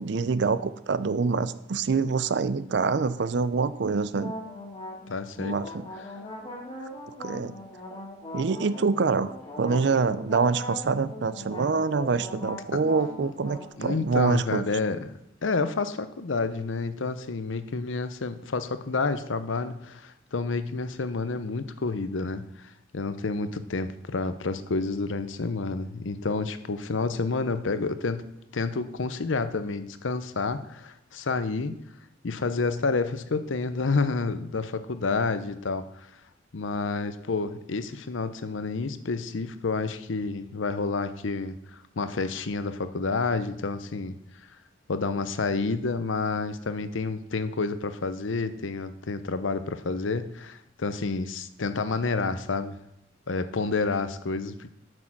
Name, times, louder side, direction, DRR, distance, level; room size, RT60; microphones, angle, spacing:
voice 1, 0.0-4.3 5.4-5.9 7.2-7.5 8.3-14.7, right 4 dB, 60° right, 14 dB, 0.5 m, -26 dB
sound 1, 4.1-13.7, left 1 dB, 25° left, 1.9 m, -40 dB
voice 2, 5.1-5.6 12.7-12.8 13.8-28.2 28.5-31.8 32.2-35.9 36.5-44.1 44.9-52.8 53.3-54.7, left 3 dB, 85° left, 11 dB, 0.7 m, -29 dB
8.9 x 6.5 x 5.9 m, 0.81 s
head